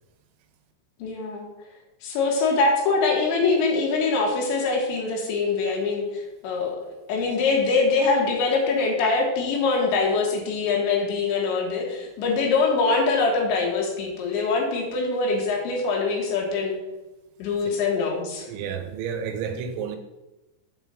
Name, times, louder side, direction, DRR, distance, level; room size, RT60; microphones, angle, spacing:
voice 1, 1.0-1.5 2.0-6.8 7.1-16.8 17.4-18.5, left 4 dB, 80° left, 0 dB, 3.6 m, -23 dB
voice 2, 18.4-20.0, right 7 dB, 85° right, 5 dB, 3.2 m, -31 dB
8.0 x 3.8 x 6.7 m, 1.1 s
omnidirectional pair, 5.3 m